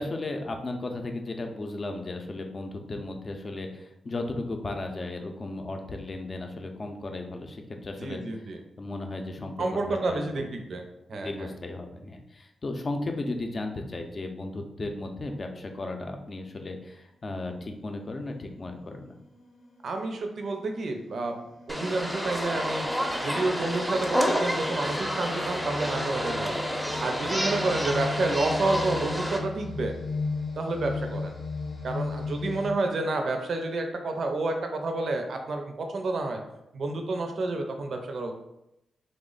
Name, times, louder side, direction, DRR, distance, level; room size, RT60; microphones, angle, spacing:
voice 1, 0.0-8.5 8.8-10.5 11.1-19.2, left 2 dB, 45° left, 4 dB, 0.5 m, -35 dB
voice 2, 8.0-8.6 9.6-10.8 11.1-11.5 19.8-21.3 21.7-29.9 30.6-31.3 31.8-36.4 36.7-38.3, right 2 dB, 65° right, 4 dB, 0.5 m, -30 dB
sound 1, 18.1-18.3 19.0-32.7, left 4 dB, 80° left, 0.7 m, -37 dB
sound 2, 21.7-29.4, equal, ahead, 0.6 m, -29 dB
3.3 x 2.0 x 3.8 m, 0.86 s
cardioid pair, 65°, 0 cm